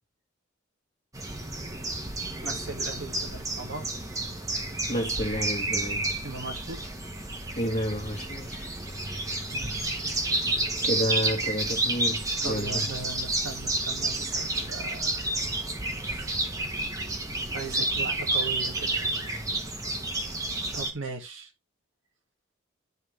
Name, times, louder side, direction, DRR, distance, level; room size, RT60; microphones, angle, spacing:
sound 1, 1.1-20.9, right 2 dB, 15° right, 1.2 m, -30 dB
voice 1, 2.4-3.9 6.2-6.9 9.5-10.1 12.4-15.3 15.9-16.4 17.5-19.3 19.9-20.0 20.7-21.5, right 3 dB, 90° right, 2.2 m, -39 dB
voice 2, 4.9-6.1 7.6-8.7 10.0-10.4 10.8-12.9, equal, 35° left, 1.7 m, -31 dB
11.0 x 4.5 x 3.3 m
head